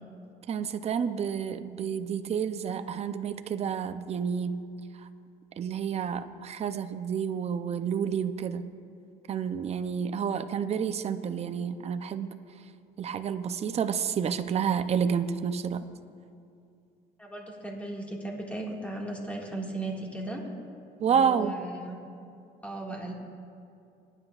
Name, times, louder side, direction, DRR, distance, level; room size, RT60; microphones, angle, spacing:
voice 1, 0.5-4.6 5.6-8.6 9.3-12.4 13.0-15.9 21.0-21.5, right 7 dB, 40° right, 9 dB, 0.6 m, -29 dB
voice 2, 17.2-20.4 21.1-22.0 22.6-23.1, right 2 dB, 10° left, -1 dB, 1.9 m, -36 dB
22.0 x 9.9 x 2.4 m, 2.5 s
cardioid pair, 110°, 17 cm